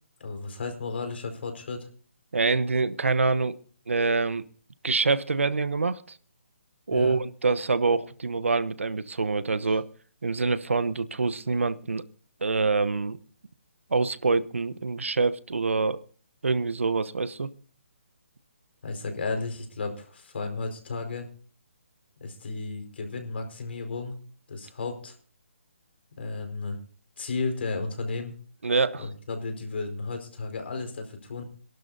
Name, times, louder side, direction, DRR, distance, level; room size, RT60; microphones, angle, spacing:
voice 1, 0.2-1.9 6.9-7.2 18.8-21.3 22.2-24.2 24.5-25.1 26.2-26.8 27.2-28.3 29.0-31.4, left 3 dB, 55° left, 4.7 m, -33 dB
voice 2, 2.3-3.6 3.9-4.4 4.8-6.2 6.9-9.9 10.2-12.0 12.4-13.2 13.9-16.0 16.4-17.5 28.6-29.1, right 4 dB, 90° right, 1.0 m, -25 dB
26.5 x 12.0 x 2.7 m
hypercardioid pair, 160°, 7 cm